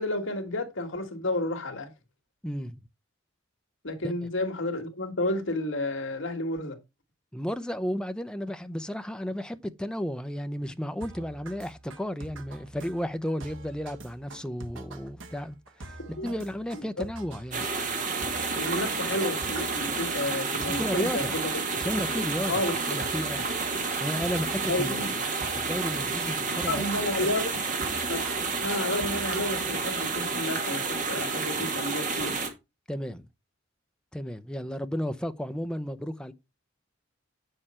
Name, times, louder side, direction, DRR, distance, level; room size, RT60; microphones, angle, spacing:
voice 1, 0.0-1.9 3.8-6.8 16.1-16.3 16.7-16.8 18.6-21.4 22.5-23.0 24.7-25.1 26.7-27.6 28.1-28.3 28.6-32.4, left 1 dB, 65° left, 1.9 m, -31 dB
voice 2, 2.4-2.8 4.0-4.1 7.3-17.7 20.7-21.4 21.8-23.5 24.0-25.0 25.5-26.9 27.2-27.3 32.9-33.3 34.1-36.3, equal, 5° left, 0.6 m, -33 dB
sound 1, 11.0-30.1, right 2 dB, 65° right, 1.4 m, -45 dB
sound 2, 17.5-32.5, right 4 dB, 40° right, 2.0 m, -30 dB
8.7 x 6.7 x 4.4 m
head